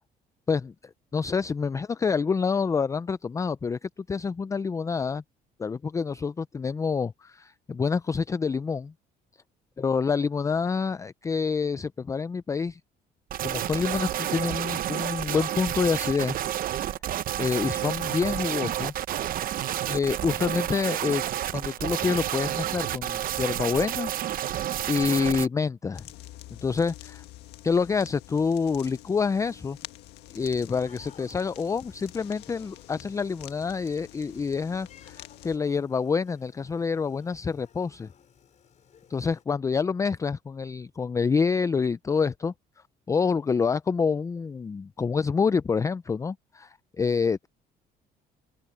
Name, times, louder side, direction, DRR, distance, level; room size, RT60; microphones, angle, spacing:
voice 1, 1.1-5.2 5.6-8.9 9.8-12.8 13.4-16.4 17.4-18.9 19.9-21.3 21.5-24.1 24.9-26.1 26.6-27.2 27.6-29.8 30.3-38.1 39.1-42.5 43.1-47.5, left 5 dB, 20° left, 0.4 m, -27 dB
sound 1, 13.3-25.5, right 12 dB, 55° right, 0.8 m, -30 dB
sound 2, 25.9-35.6, left 15 dB, 85° left, 1.7 m, -47 dB
sound 3, 30.6-39.4, left 8 dB, 45° left, 4.5 m, -57 dB
open air
cardioid pair, 110°, 17 cm